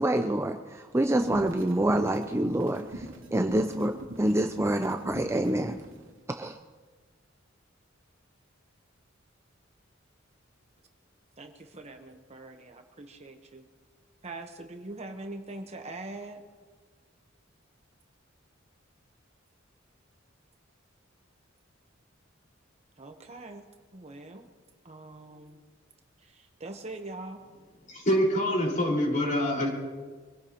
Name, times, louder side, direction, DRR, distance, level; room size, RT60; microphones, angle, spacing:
voice 1, 0.0-3.1 3.3-5.8 6.4-6.6, right 1 dB, 15° right, 6 dB, 0.5 m, -27 dB
sound 1, 1.1-5.9, right 1 dB, 85° right, 2.3 m, -42 dB
voice 2, 11.4-13.6 14.2-16.4 23.0-23.7 23.9-24.5 24.8-25.6 26.3-27.4, right 2 dB, 30° right, 5 dB, 1.0 m, -42 dB
voice 3, 27.9-29.7, equal, 40° left, -2 dB, 4.8 m, -25 dB
25.0 x 16.0 x 3.0 m, 1.4 s
head